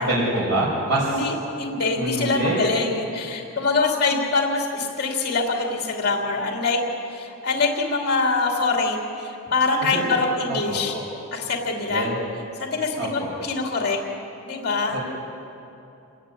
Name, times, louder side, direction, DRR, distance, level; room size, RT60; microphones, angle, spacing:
voice 1, 0.1-1.2 2.0-2.6 9.9-10.2 10.5-11.0 11.9-12.2 13.0-13.3 14.9-15.0, right 1 dB, 55° right, -6 dB, 5.4 m, -25 dB
voice 2, 1.0-6.8 7.1-10.9 11.3-12.1 12.6-14.0 14.5-15.0, left 3 dB, 45° left, 1 dB, 2.9 m, -24 dB
27.0 x 16.5 x 9.9 m, 2.8 s
head